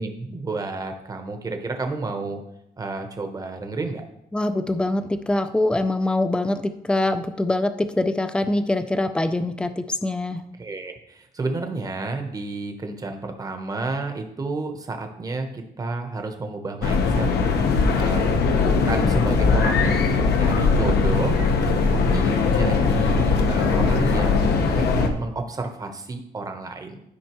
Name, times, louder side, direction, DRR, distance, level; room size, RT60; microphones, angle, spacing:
voice 1, 0.0-2.4 2.8-4.0 10.6-17.3 17.9-21.4 21.9-27.0, right 3 dB, 20° right, 5 dB, 0.9 m, -31 dB
voice 2, 4.3-10.4, left 2 dB, 5° left, 9 dB, 0.4 m, -24 dB
sound 1, 16.8-25.1, left 4 dB, 80° left, 1.0 m, -20 dB
12.5 x 5.3 x 3.0 m, 0.80 s
cardioid pair, 165°, 17 cm